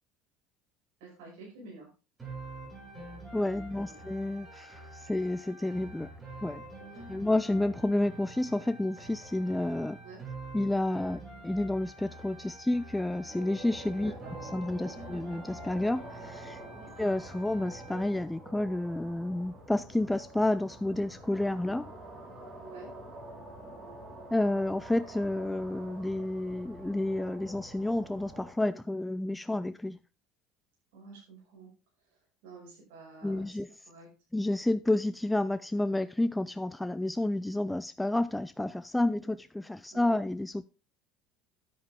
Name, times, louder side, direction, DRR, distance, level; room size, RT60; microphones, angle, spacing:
voice 1, 1.0-1.9 3.5-4.0 6.8-7.0 10.0-10.2 14.0-14.3 14.9-15.2 16.6-16.9 22.6-22.9 30.9-31.7 32.4-33.5 33.9-34.1 39.9-40.2, right 3 dB, 80° right, 5.9 m, -50 dB
sound 1, 2.2-18.2, right 2 dB, 20° right, 6.3 m, -47 dB
voice 2, 3.3-6.1 6.4-6.6 7.1-10.0 10.5-14.1 14.4-16.6 17.0-21.9 24.3-30.0 33.2-33.7 34.3-40.7, left 1 dB, 5° left, 0.4 m, -30 dB
sound 2, 13.3-28.5, right 1 dB, 35° right, 3.7 m, -47 dB
10.0 x 8.4 x 3.6 m
supercardioid pair, 105°, 0 cm